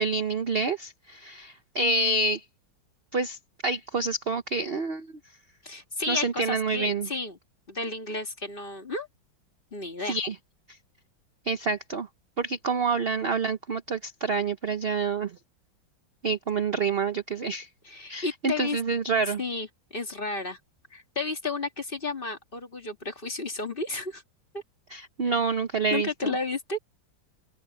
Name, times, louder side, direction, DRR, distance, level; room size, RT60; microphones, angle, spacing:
voice 1, 0.0-2.4 3.1-3.4 3.6-5.1 6.1-7.1 10.1-10.3 11.5-12.1 12.4-15.4 16.2-17.7 18.1-19.4 24.9-26.3, right 4 dB, 45° right, 0.8 m, -27 dB
voice 2, 5.6-7.4 7.7-9.1 9.7-10.2 17.8-18.8 19.3-20.6 20.9-24.2 24.5-24.6 25.9-26.8, left 3 dB, 25° left, 2.1 m, -32 dB
omnidirectional pair, 2.1 m